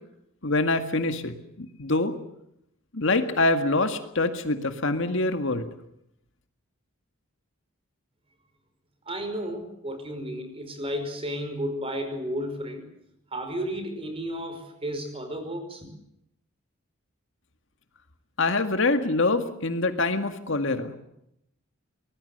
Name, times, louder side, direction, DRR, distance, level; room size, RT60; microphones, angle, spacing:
voice 1, 0.4-2.1 2.9-5.7 18.4-21.0, left 2 dB, 60° left, 8 dB, 2.0 m, -25 dB
voice 2, 9.1-12.9 13.3-15.9, equal, 25° right, 7 dB, 5.2 m, -33 dB
24.5 x 20.0 x 8.0 m, 0.78 s
head